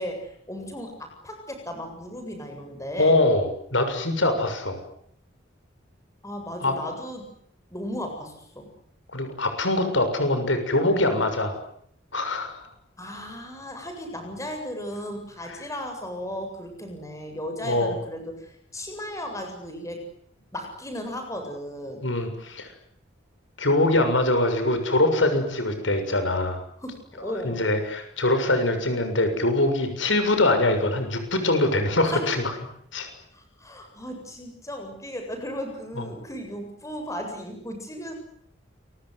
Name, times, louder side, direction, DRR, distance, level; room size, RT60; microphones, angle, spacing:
voice 1, 0.0-3.2 6.2-7.3 7.7-8.7 13.0-20.1 20.5-22.0 26.8-27.6 32.1-32.2 33.3-38.2, equal, 15° left, 4 dB, 7.8 m, -35 dB
voice 2, 2.9-4.8 6.6-6.7 9.1-11.6 12.1-12.6 15.5-15.6 17.6-18.0 22.0-22.7 23.6-26.6 27.2-32.5 32.9-33.1 36.0-36.1, left 2 dB, 85° left, 8 dB, 6.9 m, -23 dB
28.5 x 24.0 x 8.2 m, 0.68 s
head